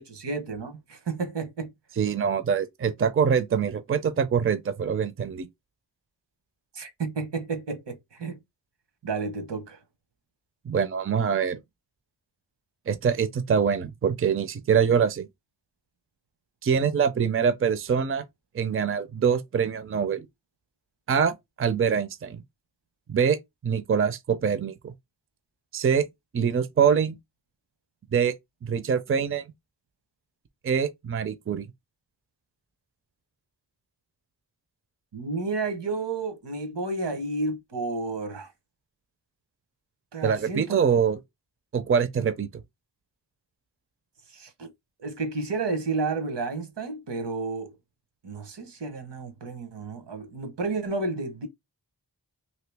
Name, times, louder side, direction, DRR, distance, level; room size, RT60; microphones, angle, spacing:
voice 1, 0.1-1.7 6.7-8.4 9.0-9.8 35.1-38.5 40.1-40.8 44.3-44.7 45.0-47.7 48.2-51.5, right 3 dB, 80° right, 1.0 m, -31 dB
voice 2, 2.0-5.5 10.7-11.6 12.9-15.3 16.6-18.2 18.5-20.3 21.1-22.4 23.1-23.4 23.6-24.9 25.7-26.0 26.3-27.1 28.1-28.3 28.6-29.4 30.6-31.7 40.2-41.2 41.7-42.5, right 7 dB, 35° right, 0.4 m, -24 dB
3.0 x 2.7 x 3.3 m
wide cardioid pair, 65°, 41 cm